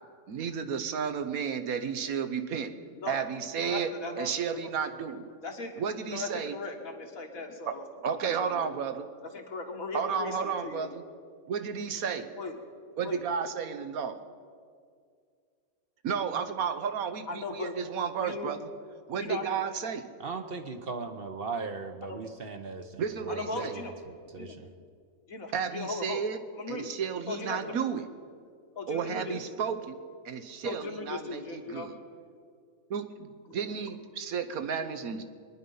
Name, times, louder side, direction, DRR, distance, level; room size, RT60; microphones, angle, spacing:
voice 1, 0.3-2.7 3.1-5.2 5.8-6.6 7.7-7.8 8.0-9.1 9.9-11.0 11.5-12.3 13.0-14.2 16.0-18.7 19.1-20.0 23.0-23.7 25.5-26.4 26.7-28.1 28.9-30.0 30.2-32.0 32.9-33.3 33.5-35.2, right 7 dB, 85° right, 9 dB, 1.4 m, -32 dB
voice 2, 3.0-4.7 5.4-7.8 8.2-8.7 9.3-10.9 12.4-12.6 13.0-13.2 17.3-17.7 18.2-18.5 19.2-19.6 22.1-22.2 23.3-23.9 24.4-24.6 25.3-26.2 26.5-26.9 27.3-27.8 28.8-29.4 30.6-31.9 33.5-33.7, left 3 dB, 75° left, 2 dB, 2.0 m, -38 dB
voice 3, 20.2-24.7, right 4 dB, 45° right, 6 dB, 1.0 m, -38 dB
22.5 x 10.5 x 5.5 m, 2.1 s
omnidirectional pair, 1.5 m